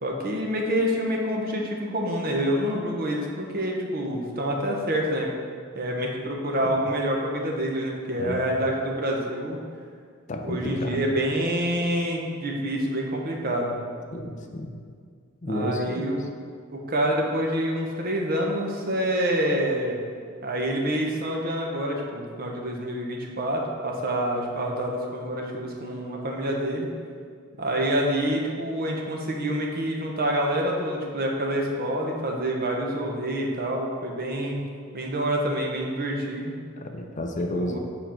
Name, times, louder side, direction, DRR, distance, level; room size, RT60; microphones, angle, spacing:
voice 1, 0.0-5.3 5.7-9.6 10.4-13.8 15.5-16.2 16.7-20.0 20.4-26.9 27.6-34.6 34.9-36.5 37.5-37.8, equal, 45° right, 0 dB, 1.0 m, -27 dB
voice 2, 8.2-8.5 10.3-11.1 14.1-14.7 15.4-16.1 36.8-37.8, left 1 dB, 35° left, 4 dB, 0.5 m, -31 dB
7.6 x 4.4 x 4.4 m, 2.1 s
head